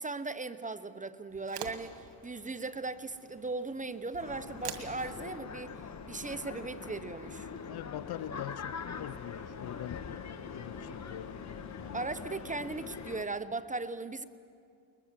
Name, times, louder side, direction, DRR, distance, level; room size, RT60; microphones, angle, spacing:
voice 1, 0.0-5.7 6.1-7.5 11.9-14.2, right 3 dB, 15° right, 12 dB, 0.8 m, -38 dB
sound 1, 1.3-7.7, right 9 dB, 85° right, 2.0 m, -49 dB
sound 2, 1.6-13.2, left 5 dB, 80° left, 2.3 m, -57 dB
sound 3, 4.2-13.2, left 5 dB, 35° left, 1.3 m, -43 dB
voice 2, 7.7-12.0, left 13 dB, 55° left, 19 dB, 0.5 m, -43 dB
21.5 x 21.0 x 7.3 m, 2.3 s
cardioid pair, 90°, 48 cm